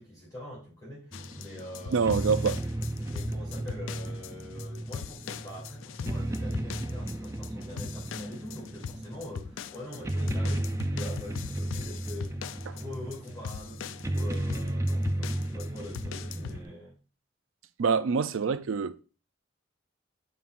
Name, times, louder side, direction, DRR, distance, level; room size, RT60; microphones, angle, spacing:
voice 1, 0.0-2.4 3.0-12.4 12.7-17.0, left 1 dB, 20° left, 2.8 m, -44 dB
sound 1, 1.1-16.6, left 7 dB, 75° left, 0.3 m, -41 dB
sound 2, 1.1-16.7, right 1 dB, 15° right, 0.3 m, -34 dB
voice 2, 1.9-2.6 17.8-19.0, right 5 dB, 85° right, 0.4 m, -26 dB
7.1 x 5.6 x 2.5 m
head